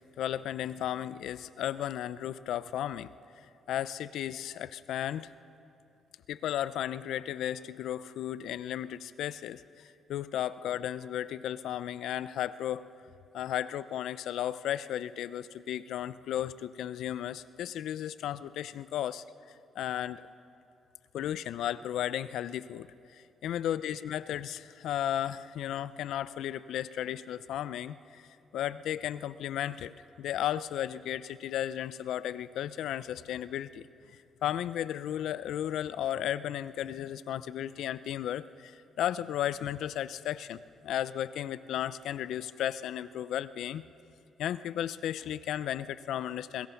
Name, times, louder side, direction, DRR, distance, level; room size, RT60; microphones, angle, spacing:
voice 1, 0.2-3.1 3.7-5.3 6.3-12.9 13.3-20.3 21.1-28.2 28.5-29.9 30.2-43.8 44.4-46.7, left 11 dB, 80° left, 16 dB, 0.5 m, -34 dB
23.0 x 21.5 x 5.8 m, 2.6 s
cardioid pair, 90°, 0 cm